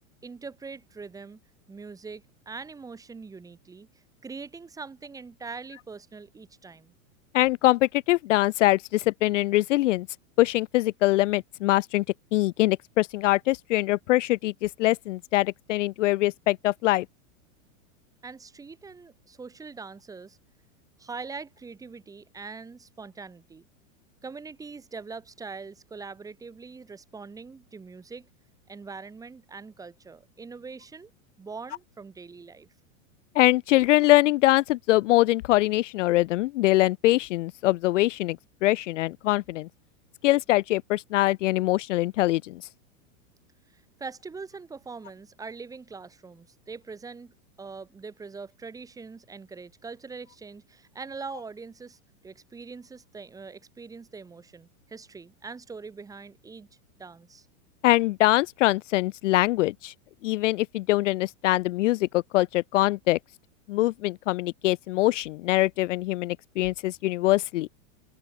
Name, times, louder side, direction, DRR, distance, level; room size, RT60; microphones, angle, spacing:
voice 1, 0.2-1.4 1.7-6.9 18.2-20.4 21.0-23.7 24.2-28.3 28.7-31.1 31.4-32.7 43.7-56.7 57.0-57.5, right 4 dB, 10° right, 3.3 m, -42 dB
voice 2, 7.3-10.1 10.4-12.0 12.3-17.1 33.4-38.4 38.6-39.7 40.2-42.6 57.8-59.9 60.2-63.2 63.7-67.7, left 17 dB, 65° left, 0.5 m, -23 dB
open air
supercardioid pair, 165°, 41 cm